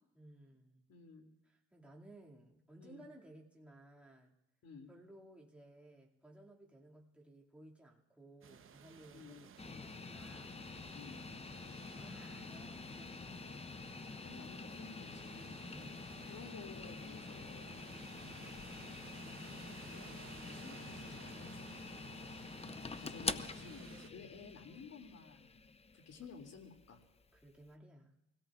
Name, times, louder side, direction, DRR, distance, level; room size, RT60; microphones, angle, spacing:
voice 1, 0.1-0.8 1.4-4.3 4.9-10.9 12.0-14.2 15.3-16.1 22.6-23.1 27.3-28.1, right 1 dB, 5° right, -3 dB, 2.3 m, -59 dB
voice 2, 0.9-1.3 2.8-3.1 4.6-4.9 9.1-9.4 10.9-11.2 14.2-15.6 16.3-17.8 19.9-20.1 20.4-21.7 23.0-25.5 26.1-27.0, left 5 dB, 60° left, 3 dB, 2.5 m, -53 dB
sound 1, 8.4-24.1, right 7 dB, 45° right, 0.9 m, -56 dB
sound 2, 9.6-27.7, left 4 dB, 20° left, 0.5 m, -47 dB
24.5 x 17.0 x 2.4 m, 0.93 s
cardioid pair, 90°, 30 cm